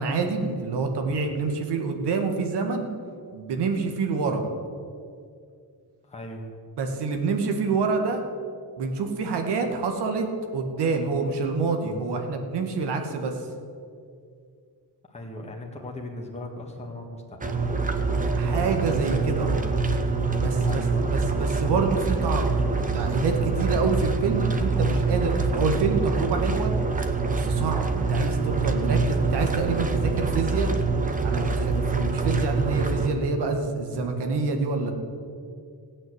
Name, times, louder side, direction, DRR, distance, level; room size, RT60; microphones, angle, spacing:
voice 1, 0.0-2.9 3.3-4.4 6.8-8.2 8.8-10.3 10.5-13.4 18.3-19.6 20.4-20.8 21.1-22.5 22.9-26.7 27.3-30.7 31.2-34.9, right 4 dB, 85° right, 4 dB, 2.0 m, -27 dB
voice 2, 6.0-6.5 15.1-17.6 20.6-21.3, left 1 dB, 15° left, 0 dB, 1.9 m, -38 dB
sound 1, 17.4-33.1, right 3 dB, 20° right, 1.0 m, -25 dB
16.0 x 8.9 x 8.1 m, 2.3 s
wide cardioid pair, 155°, 39 cm